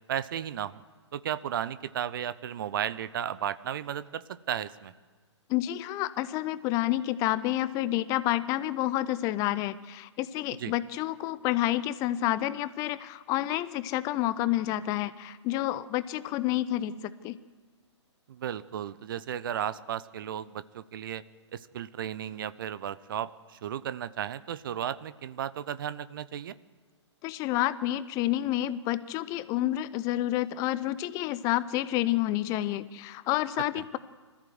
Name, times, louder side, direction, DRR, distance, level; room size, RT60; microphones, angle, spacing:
voice 1, 0.1-0.8 1.1-4.9 10.6-10.7 18.3-21.2 21.5-26.5, right 10 dB, 45° right, 15 dB, 0.9 m, -34 dB
voice 2, 5.5-16.9 17.2-17.4 27.2-34.0, left 14 dB, 20° left, 16 dB, 0.6 m, -29 dB
25.0 x 14.5 x 7.9 m, 1.5 s
figure-of-eight pair, 125°, 15 cm